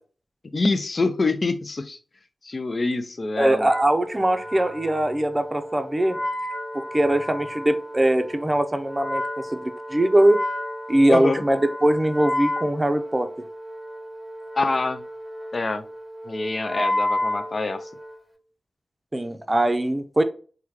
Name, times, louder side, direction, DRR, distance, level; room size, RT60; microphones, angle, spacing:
voice 1, 0.4-2.0 2.4-3.7 11.1-11.4 14.5-15.1 15.5-15.9 16.2-17.9, left 3 dB, 50° left, 9 dB, 0.4 m, -25 dB
voice 2, 3.4-6.2 6.7-9.2 9.5-10.4 10.9-13.3 19.1-20.2, right 1 dB, 20° right, 8 dB, 0.5 m, -21 dB
Wind instrument woodwind instrument, 3.5-18.3, left 1 dB, 5° left, 1.1 m, -32 dB
3.5 x 2.2 x 3.1 m, 0.39 s
cardioid pair, 50°, 0 cm